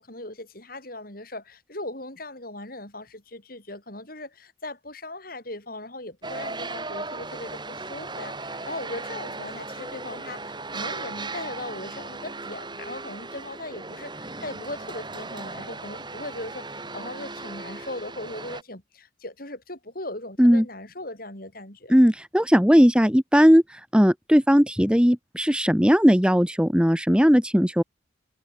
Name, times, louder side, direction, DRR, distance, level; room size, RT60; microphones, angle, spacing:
voice 1, 0.0-21.9, left 2 dB, 50° left, 7.3 m, -38 dB
sound 1, 6.2-18.6, right 3 dB, 25° right, 7.1 m, -37 dB
voice 2, 21.9-27.8, equal, 5° right, 2.1 m, -18 dB
head